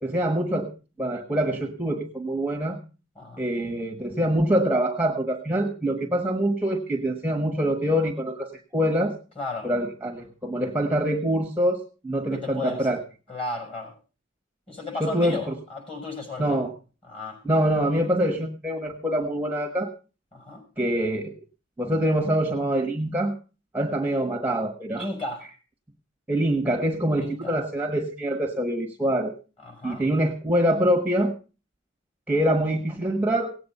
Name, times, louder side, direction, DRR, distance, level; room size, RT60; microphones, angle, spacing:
voice 1, 0.0-0.7 1.0-2.8 3.4-9.2 9.6-13.0 15.0-15.5 16.4-16.7 17.4-19.9 20.8-21.4 21.8-23.3 23.7-25.1 26.3-29.3 29.8-31.3 32.3-33.5, right 1 dB, 10° right, 2 dB, 1.2 m, -25 dB
voice 2, 9.4-9.7 12.3-12.9 13.3-13.9 14.7-16.6 17.1-17.4 20.3-20.6 25.0-25.5 27.1-27.5 29.6-30.0, left 3 dB, 30° left, 3 dB, 6.2 m, -34 dB
17.5 x 8.7 x 5.4 m, 0.35 s
head